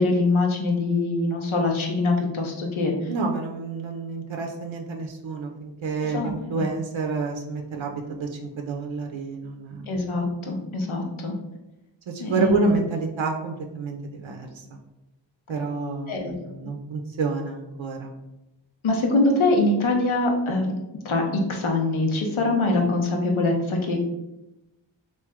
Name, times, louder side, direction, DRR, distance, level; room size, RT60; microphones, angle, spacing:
voice 1, 0.0-2.9 6.0-6.3 6.6-6.7 9.9-11.3 12.2-12.7 16.1-16.3 18.8-20.7 21.0-24.0, left 2 dB, 90° left, 2 dB, 0.7 m, -23 dB
voice 2, 3.1-9.9 12.1-14.7 15.5-18.1, right 3 dB, 80° right, 3 dB, 0.6 m, -29 dB
3.1 x 2.6 x 3.5 m, 0.95 s
wide cardioid pair, 45°, 46 cm